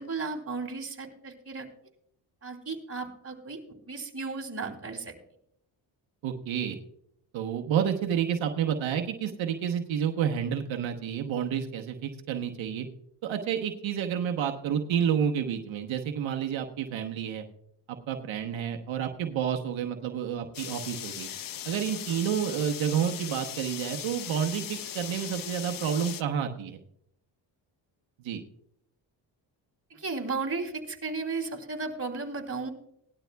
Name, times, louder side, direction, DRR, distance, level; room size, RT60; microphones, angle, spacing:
voice 1, 0.0-1.7 2.4-3.6 3.9-5.1 29.9-32.7, right 4 dB, 30° right, 1 dB, 2.8 m, -34 dB
voice 2, 6.2-6.8 7.3-12.9 13.2-17.5 17.9-21.3 21.6-26.8 28.2-28.4, right 8 dB, 80° right, 3 dB, 1.1 m, -30 dB
sound 1, 20.5-26.2, left 10 dB, 50° left, 0.7 m, -39 dB
18.5 x 12.0 x 2.3 m, 0.71 s
cardioid pair, 90°, 45 cm